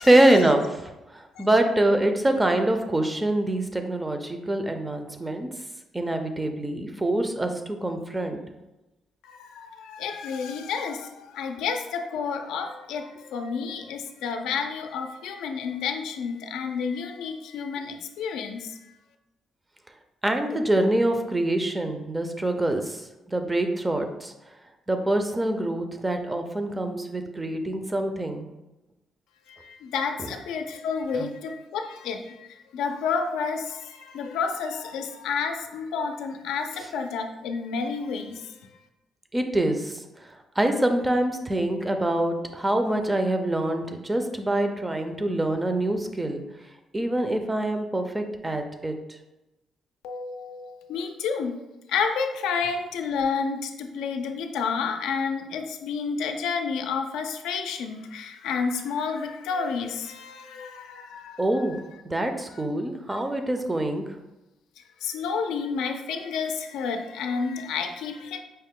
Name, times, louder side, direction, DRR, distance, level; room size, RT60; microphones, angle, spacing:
voice 1, 0.0-5.5 5.9-8.4 20.2-24.3 24.9-28.5 31.2-31.3 39.3-46.4 46.9-49.0 61.4-61.8 62.0-64.0, right 1 dB, 15° right, 6 dB, 0.5 m, -25 dB
voice 2, 9.2-18.8 29.5-38.6 50.0-51.6 51.9-61.5 65.0-68.4, left 5 dB, 90° left, 5 dB, 0.4 m, -30 dB
5.4 x 2.1 x 3.6 m, 1.0 s
cardioid pair, 90°, 0 cm